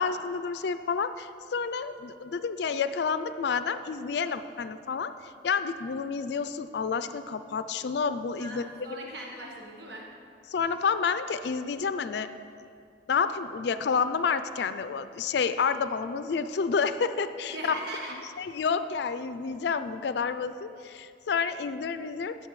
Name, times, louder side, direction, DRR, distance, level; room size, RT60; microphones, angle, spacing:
voice 1, 0.0-5.1 5.4-9.1 10.5-12.3 13.1-17.8 18.4-22.3, left 5 dB, 60° left, 11 dB, 0.4 m, -29 dB
voice 2, 8.4-10.1 17.5-18.1, right 1 dB, 60° right, -2 dB, 1.4 m, -39 dB
16.0 x 6.4 x 3.1 m, 2.4 s
head